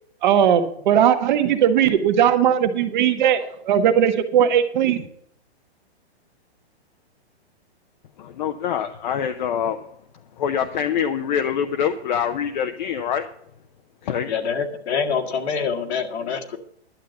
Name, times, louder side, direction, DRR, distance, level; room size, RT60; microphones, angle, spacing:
voice 1, 0.2-5.1, right 9 dB, 45° right, 7 dB, 1.3 m, -18 dB
voice 2, 8.2-9.8 10.4-13.3 14.0-14.3, left 8 dB, 45° left, 7 dB, 0.7 m, -25 dB
voice 3, 14.3-16.6, left 6 dB, 75° left, 2 dB, 2.0 m, -25 dB
11.5 x 7.6 x 6.9 m, 0.68 s
hypercardioid pair, 155°, 33 cm